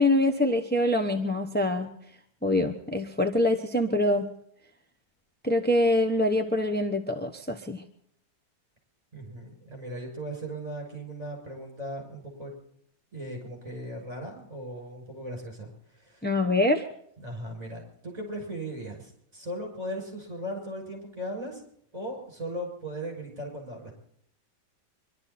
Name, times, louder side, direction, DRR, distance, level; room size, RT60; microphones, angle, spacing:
voice 1, 0.0-1.9 2.4-4.3 5.4-7.8 16.2-16.9, left 1 dB, 10° left, 3 dB, 0.6 m, -24 dB
voice 2, 9.1-12.5 13.1-16.3 17.2-21.6 21.9-23.9, right 1 dB, 20° right, 0 dB, 6.9 m, -38 dB
25.0 x 12.5 x 4.2 m, 0.66 s
omnidirectional pair, 2.1 m